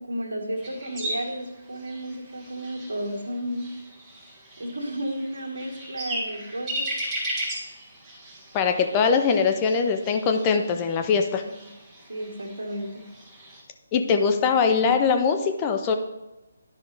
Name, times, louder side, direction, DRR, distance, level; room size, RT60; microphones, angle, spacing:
voice 1, 0.0-3.8 4.6-6.9 11.6-11.7 12.1-13.1, right 1 dB, 70° right, 0 dB, 1.7 m, -33 dB
sound 1, 0.6-13.6, right 1 dB, 15° right, 1.7 m, -37 dB
voice 2, 8.5-11.4 13.9-16.0, left 5 dB, 25° left, 5 dB, 0.6 m, -22 dB
10.5 x 5.3 x 3.3 m, 1.0 s
figure-of-eight pair, 150°, 0 cm